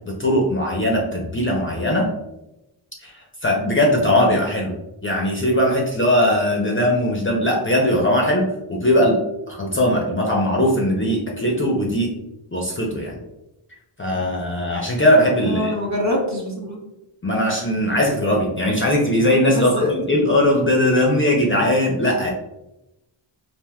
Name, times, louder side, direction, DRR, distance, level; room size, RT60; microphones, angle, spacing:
voice 1, 0.1-2.1 3.0-4.7 5.0-9.2 9.5-12.2 12.5-13.2 14.0-15.7 17.2-22.3, left 1 dB, 25° left, -2 dB, 0.5 m, -19 dB
voice 2, 15.4-16.8 19.5-19.9, left 1 dB, 35° right, -1 dB, 0.8 m, -24 dB
3.4 x 2.5 x 2.2 m, 0.93 s
wide cardioid pair, 80°, 48 cm